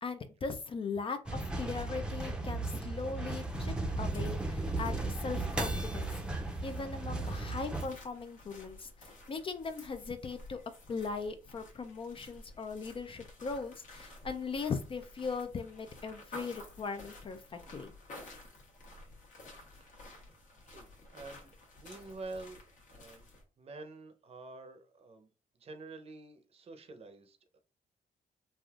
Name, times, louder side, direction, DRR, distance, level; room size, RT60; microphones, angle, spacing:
voice 1, 0.0-6.1 6.6-10.6 10.9-17.9, left 4 dB, 40° left, 8 dB, 0.4 m, -39 dB
sound 1, 1.3-7.9, right 2 dB, 5° right, 0.6 m, -35 dB
sound 2, 3.8-23.4, left 2 dB, 65° left, 1.1 m, -53 dB
voice 2, 20.7-22.6 22.9-23.3 23.6-25.3 25.5-27.6, right 3 dB, 45° right, 8 dB, 0.7 m, -48 dB
3.3 x 2.5 x 2.4 m, 0.33 s
cardioid pair, 90°, 14 cm